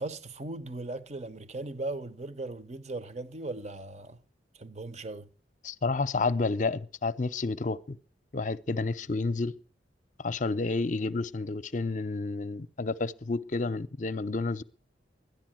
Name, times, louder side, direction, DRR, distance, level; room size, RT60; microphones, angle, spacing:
voice 1, 0.0-4.2 4.5-5.3, right 2 dB, 35° right, 0.8 m, -38 dB
voice 2, 5.6-8.0 8.3-9.5 10.2-14.6, left 3 dB, 40° left, 0.6 m, -30 dB
12.5 x 10.5 x 7.6 m
head